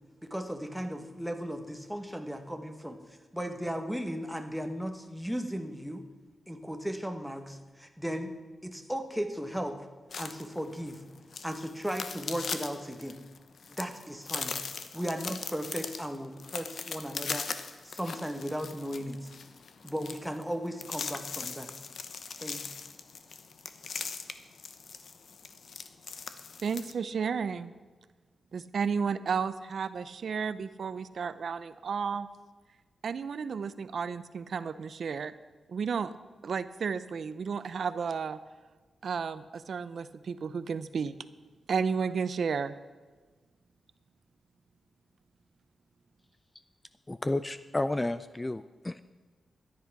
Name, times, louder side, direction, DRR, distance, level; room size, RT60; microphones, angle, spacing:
voice 1, 0.2-3.0 3.3-6.0 6.5-8.3 8.6-9.9 10.2-11.0 11.4-13.2 13.7-14.6 14.9-17.5 17.8-19.3 19.8-21.7 22.4-22.7, equal, ahead, 5 dB, 1.3 m, -36 dB
sound 1, 10.1-26.9, left 5 dB, 65° left, 0.9 m, -40 dB
voice 2, 26.6-27.7 28.5-32.3 33.0-35.3 35.7-36.1 36.4-38.4 39.0-41.2 41.7-42.7, right 6 dB, 65° right, 14 dB, 0.5 m, -32 dB
voice 3, 47.1-49.0, left 2 dB, 15° left, 13 dB, 0.4 m, -31 dB
13.0 x 10.5 x 6.0 m, 1.3 s
wide cardioid pair, 100°, 0 cm